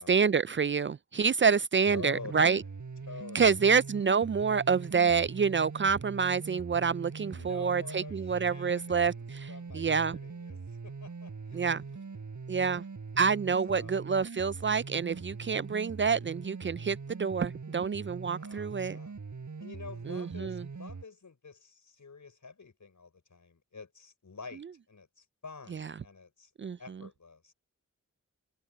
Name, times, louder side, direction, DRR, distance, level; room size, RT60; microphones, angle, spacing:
voice 1, 0.0-2.6 3.3-10.2 11.5-11.8 12.5-12.8 13.2-19.0 20.1-20.6 25.7-25.9 26.6-26.8, right 5 dB, 40° right, 0.4 m, -27 dB
voice 2, 1.9-2.7 3.1-3.5 7.2-12.2 12.5-12.8 13.7-14.0 18.2-19.1 19.6-26.5 26.8-27.5, left 4 dB, 70° left, 6.6 m, -48 dB
sound 1, 1.9-21.0, right 4 dB, 70° right, 5.7 m, -42 dB
cardioid pair, 45°, 31 cm